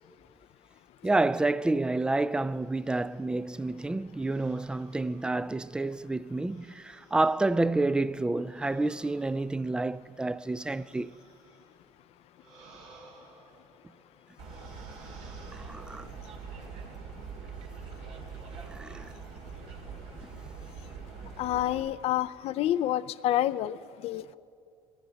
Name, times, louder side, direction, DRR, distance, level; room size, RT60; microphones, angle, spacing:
voice 1, 1.0-11.1 15.5-16.1 18.7-19.1 21.2-21.3, right 2 dB, 5° right, 0.3 m, -29 dB
sound 1, 2.6-3.3 4.2-5.8 6.4-7.7 8.4-11.8 12.3-14.0 14.4-16.2, right 3 dB, 85° right, 3.8 m, -58 dB
sound 2, 14.4-21.9, right 5 dB, 70° right, 2.1 m, -43 dB
voice 2, 21.4-24.3, left 13 dB, 60° left, 0.4 m, -28 dB
21.5 x 15.0 x 4.0 m
supercardioid pair, 90°, 12 cm